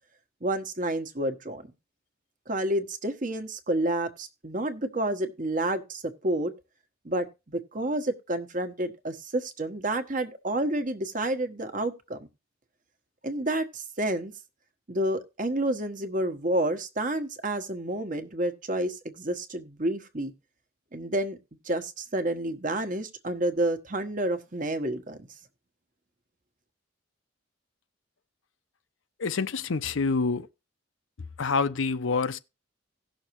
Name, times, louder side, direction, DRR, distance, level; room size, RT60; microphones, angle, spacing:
voice 1, 0.4-1.7 2.5-6.5 7.0-12.3 13.2-14.3 14.9-20.3 20.9-21.4 21.6-25.3, right 1 dB, 40° right, 1.2 m, -29 dB
voice 2, 29.2-30.5 31.4-32.4, left 4 dB, 80° left, 0.7 m, -27 dB
17.0 x 6.4 x 3.1 m
head